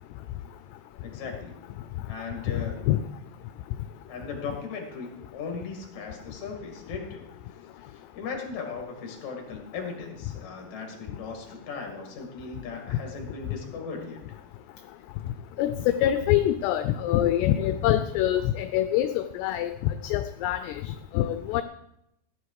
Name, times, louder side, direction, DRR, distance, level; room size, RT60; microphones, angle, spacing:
voice 1, 1.0-1.6 2.1-2.9 4.1-7.2 7.8-14.4, left 5 dB, 50° left, 2 dB, 3.1 m, -38 dB
voice 2, 15.6-21.6, left 12 dB, 80° left, 10 dB, 2.6 m, -25 dB
15.0 x 10.0 x 4.8 m, 0.79 s
omnidirectional pair, 5.1 m